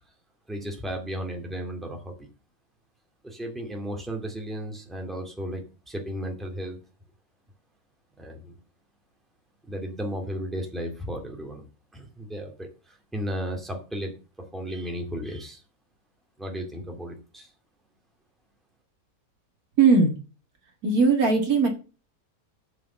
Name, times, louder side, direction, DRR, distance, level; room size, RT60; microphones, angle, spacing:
voice 1, 0.5-2.3 3.2-6.8 8.2-8.6 9.7-11.6 11.9-15.6 16.4-17.5, equal, ahead, 2 dB, 2.2 m, -34 dB
voice 2, 19.8-20.2 20.8-21.7, right 4 dB, 60° right, 3 dB, 2.3 m, -19 dB
7.2 x 6.2 x 7.3 m, 0.33 s
omnidirectional pair, 1.8 m